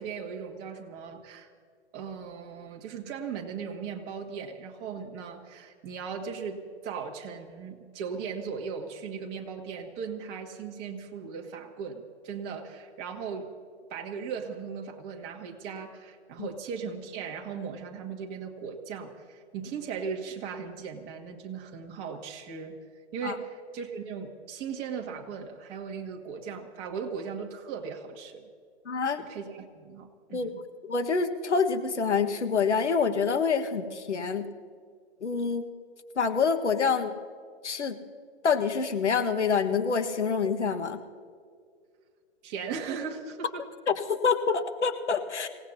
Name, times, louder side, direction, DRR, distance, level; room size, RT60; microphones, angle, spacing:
voice 1, 0.0-1.5 1.9-13.5 13.9-22.8 23.1-28.5 29.2-30.6 42.4-43.6, right 6 dB, 30° right, 2 dB, 2.0 m, -38 dB
voice 2, 28.8-29.2 30.3-30.5 30.8-34.5 35.2-35.7 36.1-37.1 37.6-38.0 38.4-41.0 44.1-45.5, left 5 dB, 90° left, 8 dB, 1.6 m, -26 dB
26.5 x 18.0 x 2.8 m, 2.1 s
hypercardioid pair, 135°, 34 cm